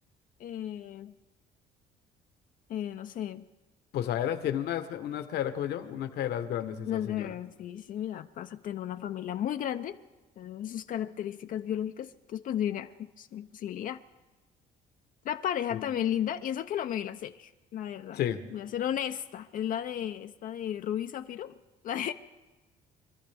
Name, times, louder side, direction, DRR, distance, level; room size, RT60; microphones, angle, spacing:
voice 1, 0.4-1.1 2.7-3.4 6.9-10.0 10.4-14.0 15.2-18.2 18.5-21.5 21.8-22.1, left 10 dB, 55° left, 8 dB, 0.5 m, -34 dB
voice 2, 3.9-7.4 15.7-15.8 18.1-18.4, left 10 dB, 75° left, 8 dB, 1.2 m, -32 dB
25.5 x 12.5 x 3.5 m, 1.2 s
cardioid pair, 110°, 17 cm